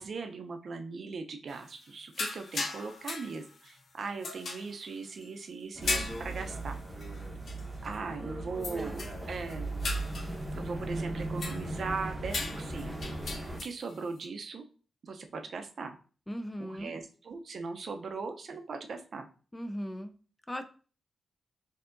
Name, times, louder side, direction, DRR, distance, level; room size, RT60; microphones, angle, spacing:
voice 1, 0.0-6.8 7.8-9.7 10.5-13.1 13.6-14.6 15.0-16.0 16.6-19.3, right 4 dB, 55° right, 6 dB, 0.5 m, -39 dB
sound 1, 1.5-1.9 2.1-3.8 4.2-5.3 5.8-7.2 7.5-7.7 7.9-8.0 8.6-9.2 9.5-11.9 12.3-14.0, left 3 dB, 55° left, 0.6 m, -38 dB
sound 2, 5.7-13.6, right 2 dB, 20° right, 0.7 m, -37 dB
voice 2, 16.3-16.9 19.5-20.1 20.5-20.6, equal, 10° left, 7 dB, 0.3 m, -37 dB
4.5 x 2.7 x 2.5 m, 0.38 s
wide cardioid pair, 125°, 0 cm